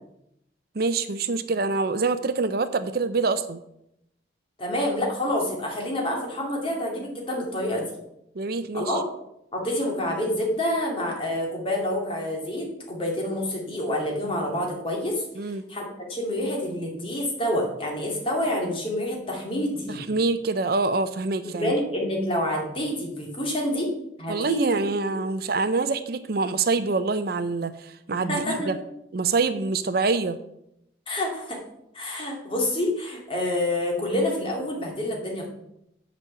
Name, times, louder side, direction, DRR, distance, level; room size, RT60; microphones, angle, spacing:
voice 1, 0.7-3.6 8.4-9.0 15.4-15.6 19.9-21.7 24.3-28.8 29.1-30.4, right 3 dB, 55° right, 12 dB, 0.5 m, -25 dB
voice 2, 4.6-7.9 8.7-9.0 9.5-20.0 21.5-23.9 24.2-24.9 28.1-28.7 31.1-31.6 31.9-35.5, left 1 dB, 30° left, -1 dB, 2.4 m, -28 dB
8.2 x 5.3 x 7.3 m, 0.80 s
head